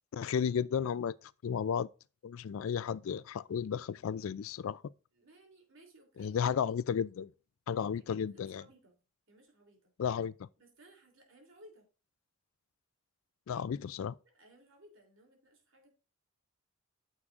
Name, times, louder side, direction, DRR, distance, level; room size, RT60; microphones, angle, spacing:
voice 1, 0.1-1.1 1.4-1.9 2.2-4.8 6.2-7.3 7.7-8.6 10.0-10.3 13.5-14.2, left 7 dB, 70° left, 0.3 m, -33 dB
voice 2, 5.1-6.7 7.9-8.9 9.3-9.9 10.6-11.9 14.2-15.9, right 1 dB, 65° right, 3.3 m, -60 dB
9.8 x 7.3 x 2.5 m
head